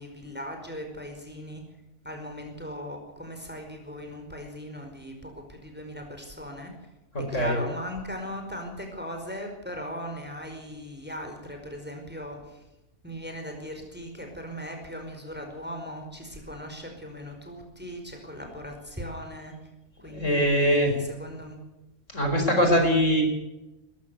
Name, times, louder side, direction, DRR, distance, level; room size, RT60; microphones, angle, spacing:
voice 1, 0.0-1.6 2.0-6.7 7.3-12.6 13.0-19.5 20.0-21.6, equal, 5° right, 3 dB, 4.9 m, -38 dB
voice 2, 7.1-7.6 20.1-20.9 22.1-23.2, equal, 55° left, 4 dB, 5.4 m, -22 dB
21.5 x 14.5 x 8.3 m, 0.99 s
omnidirectional pair, 1.5 m